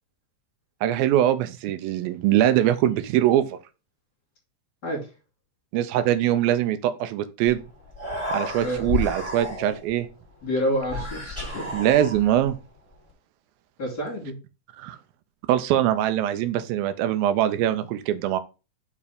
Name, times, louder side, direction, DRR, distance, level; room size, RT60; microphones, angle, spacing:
voice 1, 0.8-3.6 5.7-7.6 8.3-10.1 11.7-12.6 14.8-15.0 15.5-18.4, right 12 dB, 85° right, 2.5 m, -22 dB
Human voice, 7.5-7.6 7.8-9.9 10.8-12.5, left 2 dB, 10° right, 3.1 m, -31 dB
voice 2, 10.4-11.8 13.8-14.4, equal, 30° left, 3.1 m, -28 dB
5.9 x 5.0 x 5.0 m
omnidirectional pair, 4.2 m